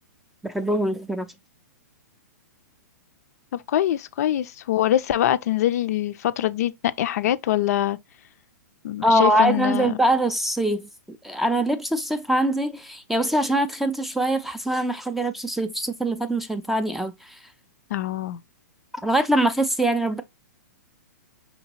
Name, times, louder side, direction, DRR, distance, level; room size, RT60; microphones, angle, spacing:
voice 1, 0.4-1.3 9.0-17.4 19.0-20.2, right 1 dB, ahead, 0.4 m, -23 dB
voice 2, 3.5-8.0 8.8-10.0 17.9-18.4, left 12 dB, 60° left, 0.4 m, -24 dB
5.2 x 2.8 x 2.9 m
hypercardioid pair, 130°, 10 cm